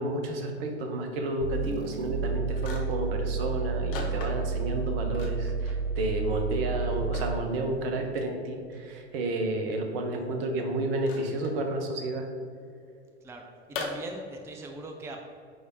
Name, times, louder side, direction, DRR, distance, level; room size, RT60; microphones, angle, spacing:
voice 1, 0.0-12.3, right 2 dB, 55° right, 4 dB, 1.2 m, -31 dB
sound 1, 1.4-7.6, right 4 dB, 80° right, 0.5 m, -31 dB
sound 2, 2.6-3.1 3.9-4.7 5.1-5.8 6.2-6.3 6.8-7.4 8.8-8.9 11.0-11.5 13.7-13.9, left 5 dB, 60° left, 1.1 m, -40 dB
voice 2, 13.2-15.4, right 2 dB, 10° right, 3 dB, 0.5 m, -41 dB
9.3 x 3.5 x 4.0 m, 2.3 s
figure-of-eight pair, 85°, 34 cm